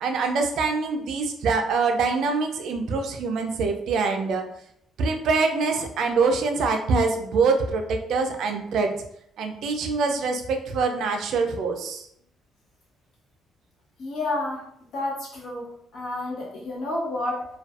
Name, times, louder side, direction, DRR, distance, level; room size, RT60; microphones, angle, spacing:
voice 1, 0.0-4.4 5.0-8.9 9.4-12.1, right 4 dB, 65° right, 4 dB, 0.3 m, -24 dB
voice 2, 14.0-17.4, left 2 dB, 55° left, -3 dB, 0.8 m, -30 dB
2.4 x 2.2 x 2.3 m, 0.71 s
cardioid pair, 145°, 0 cm